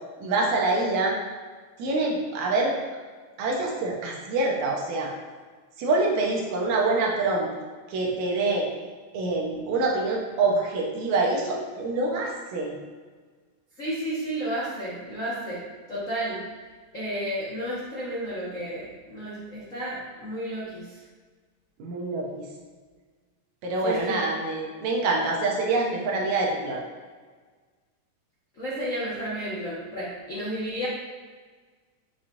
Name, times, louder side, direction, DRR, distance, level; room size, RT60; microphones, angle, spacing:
voice 1, 0.2-1.2 1.8-2.8 3.4-5.1 5.8-7.5 7.9-8.7 9.1-12.7 21.8-22.5 23.6-26.8, right 3 dB, 70° right, -1 dB, 2.1 m, -25 dB
voice 2, 13.8-15.6 15.9-16.4 16.9-21.0 23.8-24.2 28.5-30.9, right 1 dB, 55° left, -9 dB, 0.8 m, -32 dB
7.2 x 7.0 x 2.5 m, 1.5 s
omnidirectional pair, 3.7 m